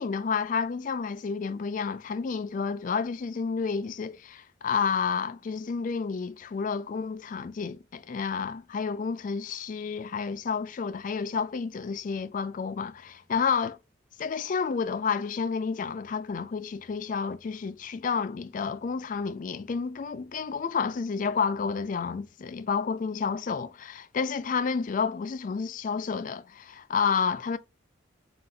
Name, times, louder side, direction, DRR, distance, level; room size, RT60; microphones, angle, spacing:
voice 1, 0.0-13.8 14.2-27.6, left 5 dB, 40° left, 0.3 m, -30 dB
3.9 x 2.6 x 3.9 m
head